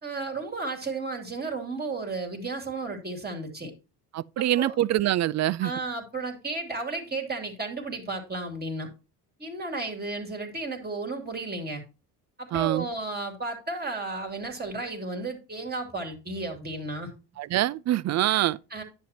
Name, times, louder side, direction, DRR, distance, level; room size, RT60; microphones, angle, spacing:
voice 1, 0.0-3.7 4.4-4.7 5.6-8.9 9.4-11.8 12.4-17.1 18.2-18.8, right 3 dB, 25° right, 2.7 m, -33 dB
voice 2, 4.1-5.7 12.5-12.9 17.4-18.6, right 13 dB, 45° right, 0.4 m, -25 dB
10.0 x 7.3 x 2.9 m
supercardioid pair, 80°, 40 cm